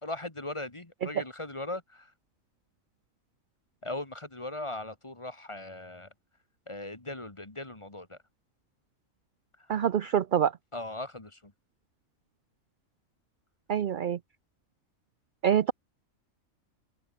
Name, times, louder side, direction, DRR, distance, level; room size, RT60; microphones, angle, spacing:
voice 1, 0.0-2.1 3.8-6.1 6.7-8.2 9.6-9.7 10.7-11.5, left 2 dB, 20° left, 2.0 m, -39 dB
voice 2, 9.7-10.5 13.7-14.2 15.4-15.7, right 9 dB, 55° right, 0.6 m, -25 dB
omnidirectional pair, 1.4 m